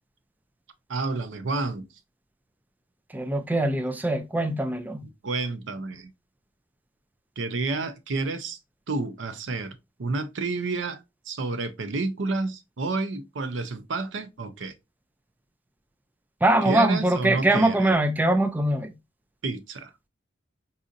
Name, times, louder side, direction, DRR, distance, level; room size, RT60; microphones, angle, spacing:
voice 1, 0.9-1.9 5.0-6.1 7.4-8.6 8.9-11.0 11.3-14.7 16.6-17.9 19.4-19.9, right 3 dB, 90° right, 0.6 m, -30 dB
voice 2, 3.1-5.1 16.4-18.9, right 1 dB, 10° right, 0.3 m, -22 dB
4.0 x 2.5 x 2.5 m
head